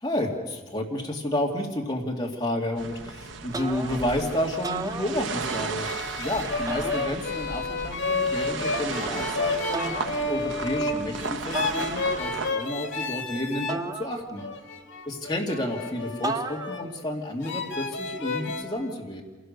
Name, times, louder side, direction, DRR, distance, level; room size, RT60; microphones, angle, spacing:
voice 1, 0.0-5.9 6.2-14.4 15.1-19.2, left 1 dB, 20° left, -1 dB, 2.4 m, -31 dB
sound 1, 2.8-12.5, right 4 dB, 65° right, 0.9 m, -35 dB
sound 2, 3.5-4.2 4.5-5.7 6.7-7.6 8.7-9.2 9.7-10.2 11.5-12.4 13.7-14.7 16.2-17.0, right 2 dB, 20° right, 0.6 m, -34 dB
sound 3, 5.4-13.8 14.4-16.9 17.4-18.6, left 3 dB, 75° left, 2.3 m, -31 dB
27.0 x 17.0 x 6.7 m, 1.3 s
head